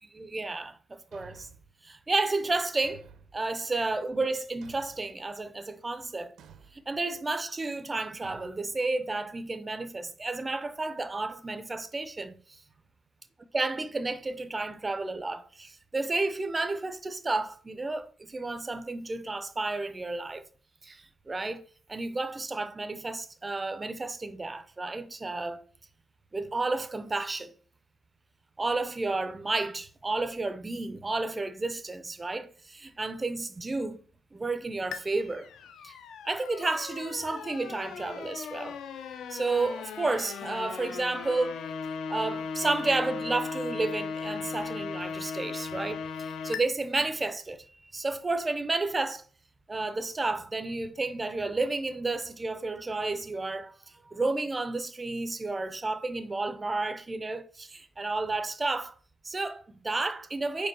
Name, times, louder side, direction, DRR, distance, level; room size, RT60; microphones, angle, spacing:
voice 1, 0.1-1.5 1.8-3.0 3.3-6.3 6.7-12.6 13.5-20.4 20.8-21.6 21.9-25.6 26.3-27.5 28.6-34.0 34.3-35.5 35.8-35.9 36.2-38.8 39.3-41.6 42.1-49.2 49.7-53.7 54.1-58.9 59.2-60.7, right 3 dB, 15° right, 0.6 m, -31 dB
Thump thud, 1.1-1.7 2.8-3.4 4.6-5.2 6.4-6.8 8.2-8.6, right 6 dB, 55° right, 0.8 m, -52 dB
sound 1, 34.9-46.6, left 5 dB, 55° left, 0.7 m, -37 dB
5.3 x 4.7 x 5.9 m
cardioid pair, 175°, 0 cm